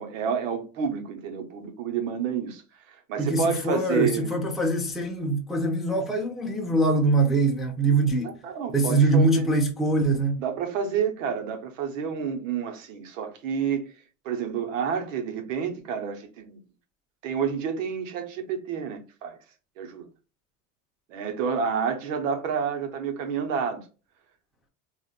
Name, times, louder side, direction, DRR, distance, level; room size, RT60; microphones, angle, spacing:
voice 1, 0.0-2.6 2.9-4.3 8.2-9.5 10.4-13.8 14.2-16.6 17.2-19.4 19.8-20.1 21.1-23.8, right 7 dB, 80° right, 1.0 m, -29 dB
voice 2, 3.2-8.4 8.7-10.4, right 2 dB, ahead, 0.5 m, -23 dB
3.6 x 2.5 x 2.4 m
supercardioid pair, 105°, 38 cm